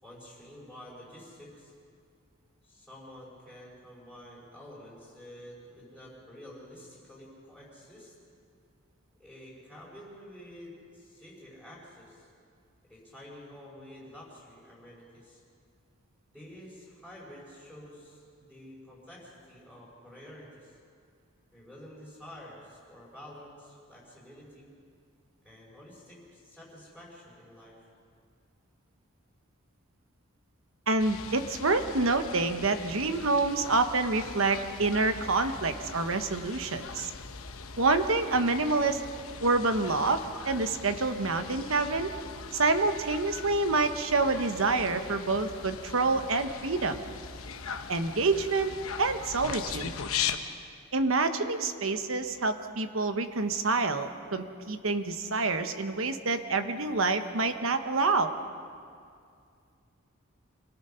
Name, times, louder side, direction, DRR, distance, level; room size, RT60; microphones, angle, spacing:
voice 1, 0.0-1.7 2.6-8.1 9.2-12.3 12.9-15.4 16.3-20.8 21.5-24.7 25.4-27.9, left 1 dB, 5° right, -7 dB, 5.2 m, -49 dB
voice 2, 30.9-37.1 37.8-39.0 39.4-42.1 42.5-47.0 47.9-48.7 49.0-49.9 50.9-58.3, right 3 dB, 70° right, 8 dB, 1.1 m, -27 dB
sound 1, 31.0-50.4, left 6 dB, 85° left, 1.0 m, -40 dB
26.5 x 17.5 x 5.7 m, 2.3 s
head